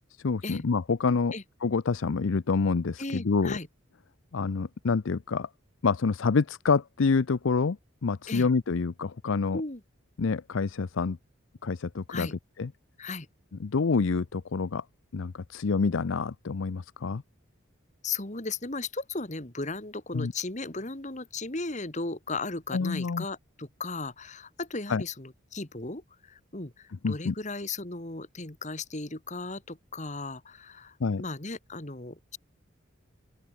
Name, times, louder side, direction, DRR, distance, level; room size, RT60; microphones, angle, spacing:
voice 1, 0.2-1.3 1.6-3.6 4.3-5.5 5.8-9.6 10.2-11.2 11.6-12.3 12.6-12.7 13.6-14.8 15.1-17.2 20.1-20.3 22.7-23.2 24.9-25.0 27.0-27.3 31.0-31.2, left 4 dB, 70° left, 0.5 m, -27 dB
voice 2, 3.0-3.7 8.3-8.5 9.5-9.8 12.1-12.3 13.0-13.3 18.0-32.4, left 3 dB, 35° left, 2.1 m, -36 dB
open air
head